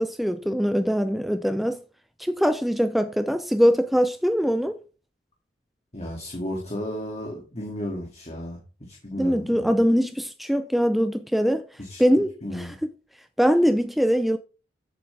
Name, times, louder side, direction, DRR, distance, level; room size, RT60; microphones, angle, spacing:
voice 1, 0.0-1.8 2.2-4.7 9.2-11.6 12.0-12.9 13.4-14.4, equal, ahead, 0.5 m, -22 dB
voice 2, 5.9-8.6 8.9-9.7 11.8-12.0 12.4-12.7, left 1 dB, 35° left, 2.4 m, -33 dB
15.0 x 7.4 x 3.4 m
head